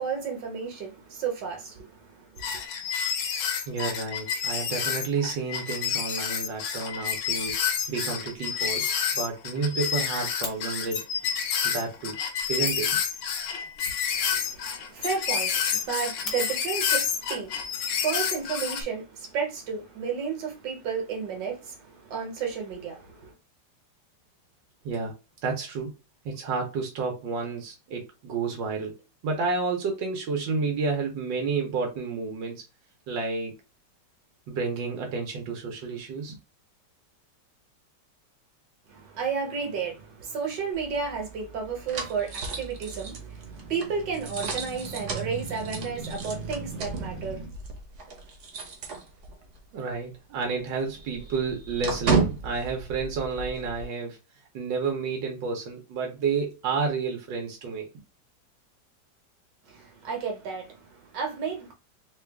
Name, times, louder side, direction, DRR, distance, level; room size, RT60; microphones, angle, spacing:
voice 1, 0.0-2.6 14.1-23.3 38.9-47.5 59.7-61.7, right 6 dB, 75° right, 1.7 m, -32 dB
sound 1, 2.4-18.8, left 7 dB, 80° left, 1.4 m, -29 dB
voice 2, 3.7-11.1 11.6-12.2 12.5-12.9 24.8-25.9 26.2-29.0 29.2-32.6 33.1-33.5 34.5-36.4 49.7-54.2 54.5-57.9, right 4 dB, 90° right, 1.6 m, -30 dB
Fire, 7.3-8.2 8.5-8.6 8.9-9.0 9.3-9.4 9.6-10.6 12.3-12.4 12.6-13.0 13.8-14.7 15.0-15.1 15.4-15.5 15.9-16.4 17.4-17.5 18.2-18.8, left 4 dB, 65° left, 1.5 m, -41 dB
sound 2, 40.7-49.6 49.9-50.0 50.4-53.8, right 4 dB, 50° right, 1.0 m, -33 dB
3.7 x 2.3 x 3.4 m
omnidirectional pair, 1.9 m